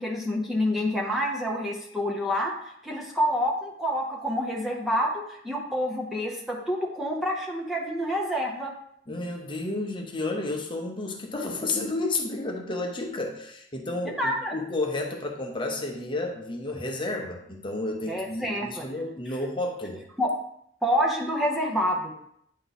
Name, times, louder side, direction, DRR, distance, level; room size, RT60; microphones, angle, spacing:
voice 1, 0.0-2.5 2.8-8.7 14.1-14.5 18.1-18.8 20.2-20.3 20.8-22.2, equal, ahead, -2 dB, 0.8 m, -27 dB
voice 2, 9.1-20.0, left 2 dB, 25° left, 2 dB, 0.9 m, -31 dB
9.2 x 3.1 x 4.0 m, 0.72 s
head